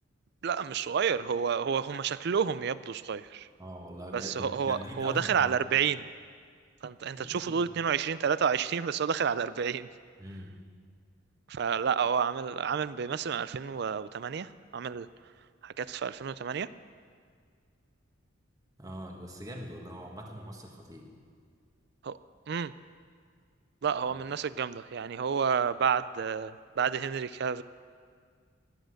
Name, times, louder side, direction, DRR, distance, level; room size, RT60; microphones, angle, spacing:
voice 1, 0.4-3.5 4.1-6.0 6.8-9.9 11.5-15.1 15.6-16.7 22.0-22.2 22.5-22.7 23.8-27.6, right 7 dB, 55° right, 16 dB, 0.4 m, -30 dB
voice 2, 3.6-5.6 7.2-7.7 10.2-10.6 18.8-21.1 24.1-24.2, equal, 15° right, 1 dB, 1.7 m, -42 dB
17.5 x 10.5 x 6.5 m, 2.1 s
head